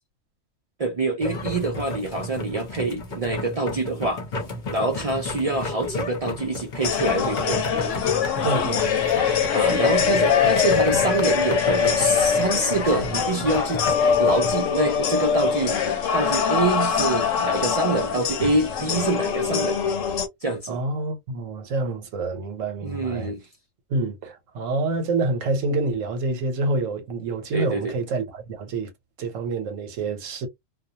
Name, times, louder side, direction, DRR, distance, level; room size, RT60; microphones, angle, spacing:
voice 1, 0.8-4.2 4.7-7.6 9.5-19.8 20.4-20.8 22.8-23.4 27.5-27.9, right 2 dB, 55° right, 0.4 m, -26 dB
sound 1, 1.2-14.5, left 1 dB, 45° left, 0.7 m, -34 dB
sound 2, 6.8-20.3, left 6 dB, 75° left, 1.0 m, -23 dB
voice 2, 8.4-8.9 20.7-23.3 23.9-28.9 29.2-30.5, right 2 dB, 75° right, 1.1 m, -27 dB
2.4 x 2.3 x 2.7 m
omnidirectional pair, 1.3 m